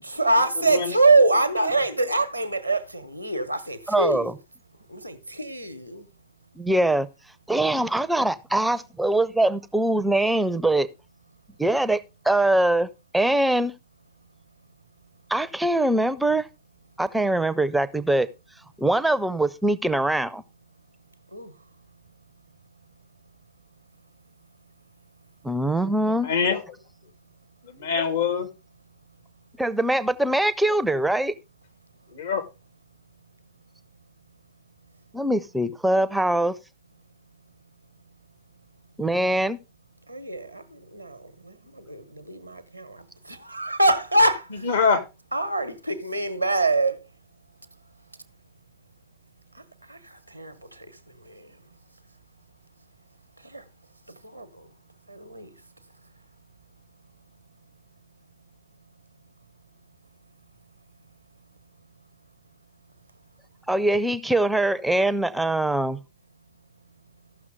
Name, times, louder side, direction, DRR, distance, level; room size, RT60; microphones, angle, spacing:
voice 1, 0.0-4.3 4.9-6.1 21.3-21.5 40.1-44.7 45.3-47.0 49.5-50.9 51.2-51.6 53.4-53.6 54.1-54.7 55.1-55.5, right 2 dB, 85° right, 0.9 m, -25 dB
voice 2, 0.6-0.9 26.1-26.6 27.6-28.5 32.1-32.4 44.6-45.0, left 5 dB, 65° left, 1.6 m, -24 dB
voice 3, 3.9-4.3 6.6-7.1 7.5-10.9 11.6-13.7 15.3-16.5 17.0-18.3 18.8-20.4 25.4-26.3 29.6-31.3 35.1-36.6 39.0-39.6 63.7-66.0, right 1 dB, 5° right, 0.5 m, -23 dB
14.5 x 6.1 x 3.5 m
figure-of-eight pair, 90°, 0 cm